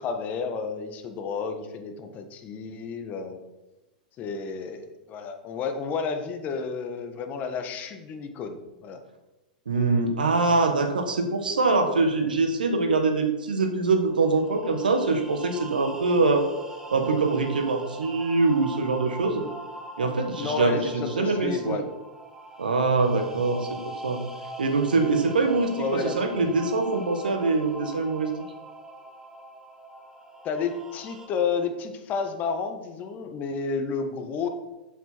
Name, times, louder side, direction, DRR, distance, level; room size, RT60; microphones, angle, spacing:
voice 1, 0.0-3.4 4.2-9.0 20.4-21.8 25.8-26.6 30.4-34.5, left 5 dB, 35° left, 6 dB, 1.4 m, -31 dB
voice 2, 9.6-16.5 16.9-19.4 20.0-21.8 22.6-23.7 24.0-24.2 24.6-28.3, right 3 dB, 85° right, 5 dB, 1.6 m, -24 dB
sound 1, 14.0-31.3, right 2 dB, 10° right, 1.4 m, -42 dB
7.7 x 7.7 x 4.5 m, 1.1 s
hypercardioid pair, 105°, 5 cm